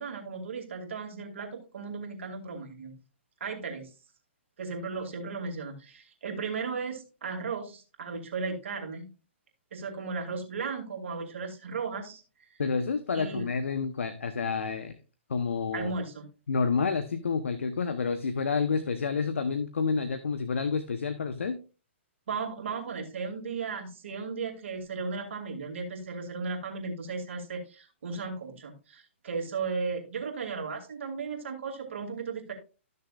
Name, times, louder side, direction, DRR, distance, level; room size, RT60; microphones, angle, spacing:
voice 1, 0.0-2.9 3.4-3.9 4.6-9.1 9.7-12.2 13.1-13.5 15.7-16.3 22.3-32.5, right 4 dB, 65° right, 2 dB, 2.6 m, -35 dB
voice 2, 12.6-15.0 15.3-16.0 16.5-21.6, left 5 dB, 80° left, 10 dB, 0.9 m, -29 dB
13.5 x 6.6 x 2.4 m, 0.33 s
hypercardioid pair, 135°, 7 cm